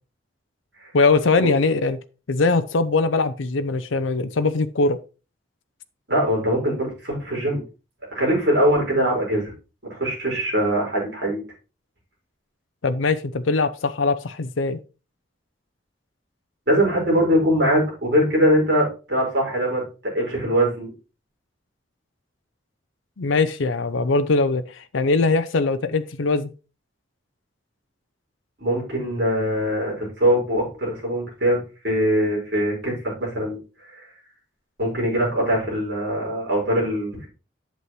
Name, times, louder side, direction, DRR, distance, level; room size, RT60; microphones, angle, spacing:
voice 1, 0.9-2.0 2.3-5.0 12.8-14.8 23.2-26.5, left 3 dB, 85° left, 0.6 m, -21 dB
voice 2, 6.1-7.6 8.1-9.5 9.9-11.4 16.7-20.9 28.6-31.6 31.8-32.9 33.2-33.6 33.8-34.0 34.8-37.3, equal, 60° right, 5.0 m, -22 dB
8.3 x 7.5 x 3.2 m
head